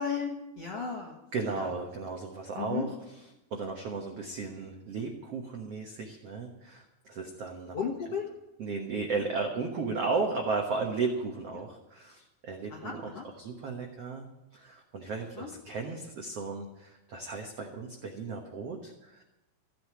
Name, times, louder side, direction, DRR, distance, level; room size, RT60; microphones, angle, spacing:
voice 1, 0.0-1.2 1.6-1.7 2.6-2.9 7.7-8.3 12.7-13.2 15.4-15.5, left 6 dB, 55° left, -1 dB, 1.7 m, -34 dB
voice 2, 1.3-3.0 3.5-7.8 8.6-13.1 13.4-14.3 14.5-19.2, right 4 dB, 75° right, 2 dB, 1.4 m, -35 dB
15.0 x 7.8 x 9.8 m, 0.97 s
omnidirectional pair, 4.8 m